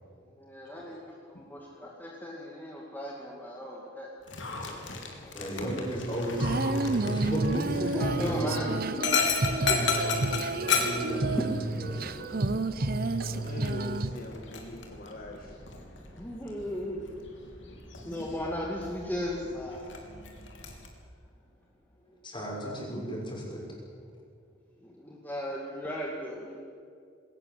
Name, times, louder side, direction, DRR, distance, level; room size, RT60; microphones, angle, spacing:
voice 1, 0.4-4.1 7.8-8.7 9.8-9.9 11.7-13.0 16.1-17.1 18.0-20.0 24.8-26.6, left 1 dB, 10° left, -2 dB, 2.2 m, -37 dB
Dog, 4.2-20.9, left 5 dB, 70° left, 3.4 m, -35 dB
voice 2, 5.3-9.0 10.6-12.1 16.2-16.3 17.7-17.8 22.0-23.6, right 1 dB, 25° left, -2 dB, 5.8 m, -35 dB
Female singing, 6.3-14.1, right 2 dB, 50° right, 0.9 m, -30 dB
voice 3, 9.6-11.4 13.3-15.6, left 1 dB, 50° left, 1 dB, 2.0 m, -41 dB
21.0 x 18.0 x 7.9 m, 2.3 s
head